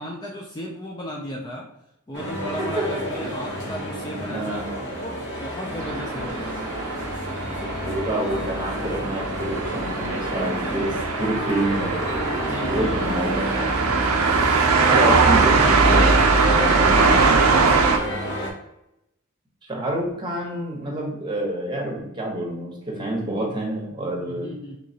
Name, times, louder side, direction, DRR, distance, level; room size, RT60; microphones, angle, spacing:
voice 1, 0.0-1.7 2.1-4.6 5.0-6.9 12.3-13.2 14.7-15.1 15.4-18.3 24.3-24.8, equal, 20° left, -1 dB, 0.3 m, -35 dB
sound 1, 2.1-18.5, equal, 55° left, 0.8 m, -29 dB
voice 2, 4.3-4.8 7.5-7.6 7.8-12.0 12.7-13.7 14.9-16.1 16.6-17.3 19.7-24.5, right 1 dB, 20° right, -2 dB, 0.9 m, -28 dB
sound 2, 5.8-18.0, right 4 dB, 80° right, 0.5 m, -21 dB
3.7 x 3.0 x 2.7 m, 0.84 s
head